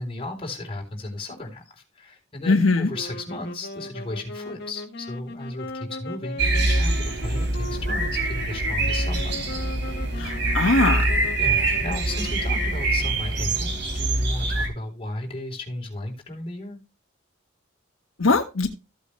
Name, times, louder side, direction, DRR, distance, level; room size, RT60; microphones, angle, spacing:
voice 1, 0.0-9.4 11.4-16.8, left 2 dB, 30° left, 3.8 m, -35 dB
voice 2, 2.5-2.9 10.2-11.1 18.2-18.7, left 3 dB, 90° left, 1.5 m, -21 dB
sound 1, 2.9-13.3, left 1 dB, 55° left, 1.7 m, -38 dB
sound 2, 6.4-14.7, right 2 dB, 60° right, 3.2 m, -24 dB
15.0 x 8.3 x 2.2 m
head